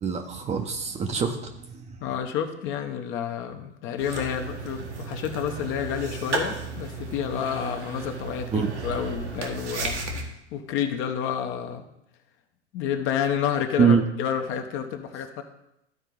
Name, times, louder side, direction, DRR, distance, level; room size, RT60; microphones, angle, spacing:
voice 1, 0.0-2.0 8.5-8.7 13.8-14.1, right 6 dB, 20° right, 5 dB, 0.8 m, -24 dB
voice 2, 2.0-10.0 10.5-11.8 12.7-15.4, left 8 dB, 35° left, 6 dB, 0.9 m, -29 dB
sound 1, 4.0-10.2, right 3 dB, 75° right, 1.5 m, -34 dB
13.0 x 4.5 x 3.8 m, 0.82 s
figure-of-eight pair, 95°, 35 cm